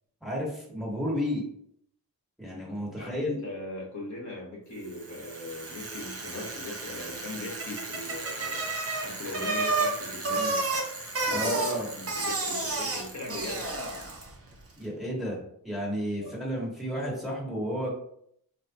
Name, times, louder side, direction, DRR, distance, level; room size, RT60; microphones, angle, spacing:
voice 1, 0.2-1.4 2.4-3.4 11.3-11.9 14.8-15.4 15.6-17.9, equal, ahead, -4 dB, 1.4 m, -31 dB
voice 2, 2.9-8.7 9.0-10.6 11.2-13.8 16.2-16.3, left 1 dB, 45° left, -3 dB, 1.1 m, -39 dB
Bicycle, 4.9-14.4, right 3 dB, 35° right, 0.8 m, -32 dB
3.2 x 2.6 x 2.7 m, 0.69 s
cardioid pair, 55°, 40 cm